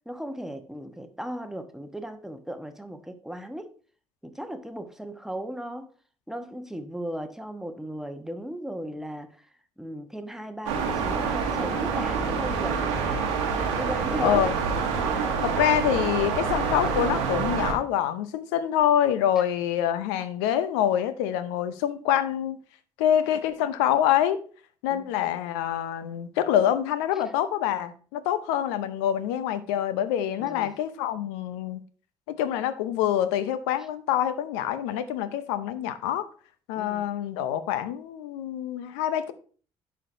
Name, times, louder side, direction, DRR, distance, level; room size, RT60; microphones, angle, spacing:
voice 1, 0.1-3.7 4.2-5.9 6.3-9.5 9.8-12.8 13.8-14.4 24.9-25.1 30.4-30.7 36.8-37.0, equal, 5° right, 1.0 m, -36 dB
sound 1, 10.7-17.7, right 5 dB, 80° right, 1.1 m, -27 dB
voice 2, 14.2-14.5 15.4-22.6 23.0-24.4 24.8-31.8 32.3-36.3 36.7-39.3, left 10 dB, 75° left, 0.6 m, -26 dB
11.0 x 4.5 x 2.6 m
hypercardioid pair, 50°, 15 cm